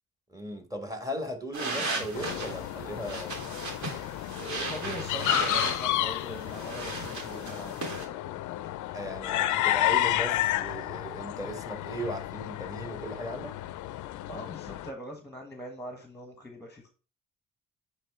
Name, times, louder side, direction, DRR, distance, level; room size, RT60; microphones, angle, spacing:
voice 1, 0.3-3.4 8.9-13.5, equal, 10° right, 1.7 m, -37 dB
sound 1, 1.5-8.0, right 3 dB, 65° right, 2.5 m, -36 dB
sound 2, 2.1-14.9, left 14 dB, 80° left, 0.5 m, -31 dB
voice 2, 4.4-8.2 14.3-16.9, equal, 10° left, 1.3 m, -42 dB
9.0 x 3.4 x 3.6 m
cardioid pair, 90°, 30 cm